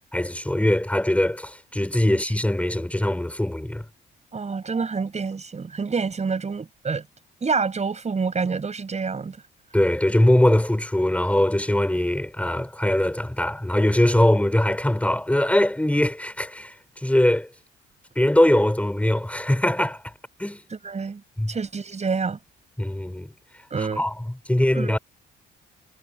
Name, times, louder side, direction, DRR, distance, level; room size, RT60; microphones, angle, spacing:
voice 1, 0.1-3.8 9.7-17.5 18.2-20.1 20.4-20.6 21.4-21.5 22.8-23.3 23.8-24.1 24.5-25.0, left 1 dB, 5° left, 5.6 m, -21 dB
voice 2, 4.3-7.0 7.4-9.4 20.7-21.2 21.5-22.4 23.7-24.0 24.7-25.0, right 5 dB, 35° right, 6.6 m, -27 dB
cardioid pair, 90°, 20 cm